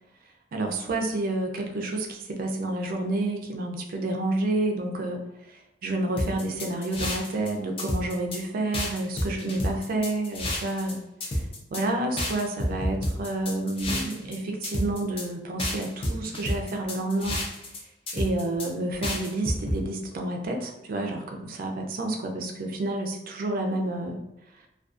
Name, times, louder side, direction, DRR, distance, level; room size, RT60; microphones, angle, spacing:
voice 1, 0.5-5.2 5.5-11.4 11.7-17.4 18.1-24.2, right 2 dB, 55° right, 3 dB, 0.4 m, -29 dB
sound 1, 6.2-7.5 7.8-8.4 8.7-10.9 11.2-11.8 12.2-14.4 14.6-15.2 15.6-17.8 18.1-18.7 19.0-19.8, left 1 dB, 30° left, 0.5 m, -30 dB
2.4 x 2.3 x 2.4 m, 0.86 s
head